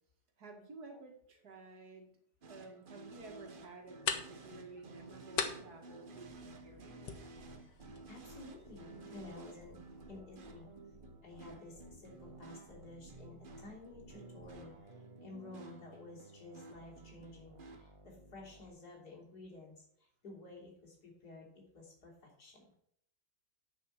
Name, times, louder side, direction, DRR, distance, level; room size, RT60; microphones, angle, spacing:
voice 1, 0.4-2.1 2.5-7.0, right 3 dB, 65° right, 2 dB, 2.3 m, -53 dB
sound 1, 2.4-17.8, right 3 dB, 40° right, 0.8 m, -54 dB
sound 2, 3.1-10.1, left 7 dB, 85° left, 1.7 m, -44 dB
sound 3, 6.3-18.7, right 1 dB, 20° right, 1.4 m, -58 dB
voice 2, 8.1-9.8 10.1-10.7 11.2-22.7, left 2 dB, 65° left, -3 dB, 3.6 m, -53 dB
10.0 x 5.7 x 6.4 m, 0.68 s
omnidirectional pair, 1.8 m